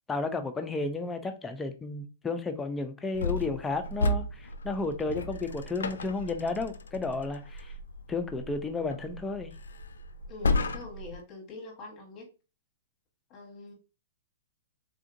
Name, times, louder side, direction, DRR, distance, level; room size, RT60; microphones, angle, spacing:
voice 1, 0.1-7.7 8.1-9.5, left 3 dB, 10° left, 0.4 m, -32 dB
sound 1, 3.1-11.2, left 2 dB, 90° left, 0.4 m, -34 dB
voice 2, 10.3-12.3 13.3-13.7, left 2 dB, 30° left, 1.2 m, -44 dB
3.6 x 2.4 x 2.5 m
hypercardioid pair, 135°, 0 cm